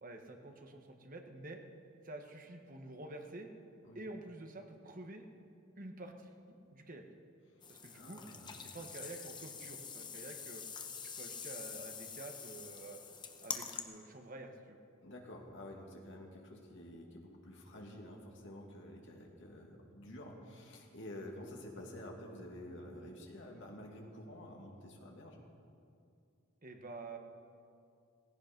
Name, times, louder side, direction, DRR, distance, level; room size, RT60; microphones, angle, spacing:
voice 1, 0.0-1.6 2.0-3.5 3.9-5.2 5.8-7.1 7.7-8.2 8.7-10.6 11.2-13.0 13.4-14.8 26.6-27.2, right 2 dB, 40° right, 4 dB, 1.4 m, -49 dB
sound 1, 7.6-13.8, left 6 dB, 20° left, 0.9 m, -46 dB
voice 2, 7.9-8.7 15.0-25.4, left 1 dB, 60° left, 0 dB, 2.4 m, -50 dB
17.0 x 16.0 x 5.3 m, 2.4 s
head